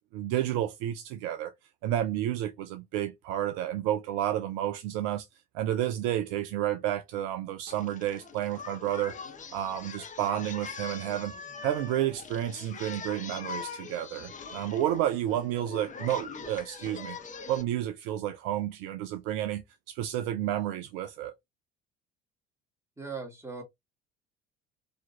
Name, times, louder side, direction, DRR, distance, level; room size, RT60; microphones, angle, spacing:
voice 1, 0.1-1.5 1.8-5.3 5.5-9.1 9.5-11.3 11.6-17.2 17.5-21.3, right 12 dB, 50° right, 0.5 m, -31 dB
Singing, 7.7-17.6, left 5 dB, 25° left, 1.1 m, -42 dB
voice 2, 23.0-23.6, right 4 dB, 10° right, 1.7 m, -38 dB
3.8 x 2.9 x 2.7 m
figure-of-eight pair, 60°, 31 cm